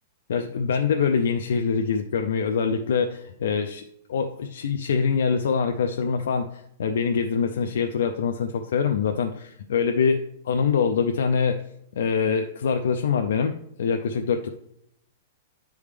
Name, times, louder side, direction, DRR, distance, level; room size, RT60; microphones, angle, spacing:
voice 1, 0.3-3.8 4.1-11.6 12.0-13.5 13.8-14.5, left 6 dB, 70° left, 5 dB, 0.4 m, -24 dB
9.7 x 3.5 x 3.3 m, 0.74 s
supercardioid pair, 180°, 0 cm